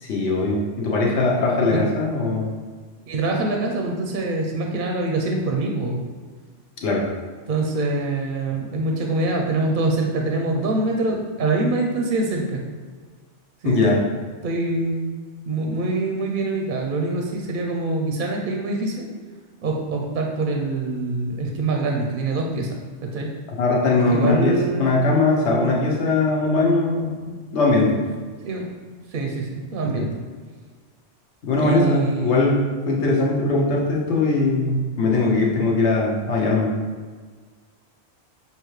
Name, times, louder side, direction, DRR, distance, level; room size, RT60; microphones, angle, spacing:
voice 1, 0.0-2.5 6.8-7.0 13.6-14.0 23.6-28.0 29.8-30.0 31.4-36.7, left 3 dB, 70° left, -2 dB, 1.1 m, -20 dB
voice 2, 3.1-6.0 7.5-12.6 13.6-13.8 14.4-15.1 15.5-19.1 19.6-23.3 24.1-24.9 28.4-30.2 31.6-32.4, right 2 dB, 60° right, 1 dB, 0.6 m, -24 dB
5.7 x 2.8 x 3.1 m, 1.5 s
omnidirectional pair, 1.2 m